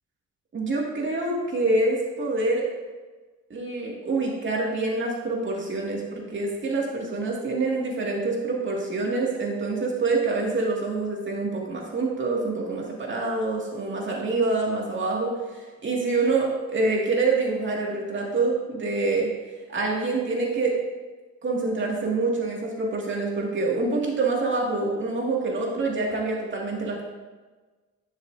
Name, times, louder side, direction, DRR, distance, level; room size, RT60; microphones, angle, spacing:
voice 1, 0.5-2.7 3.5-19.3 19.7-20.7 21.4-27.0, right 3 dB, 40° right, -2 dB, 2.3 m, -26 dB
11.0 x 6.6 x 2.8 m, 1.3 s
cardioid pair, 90°, 30 cm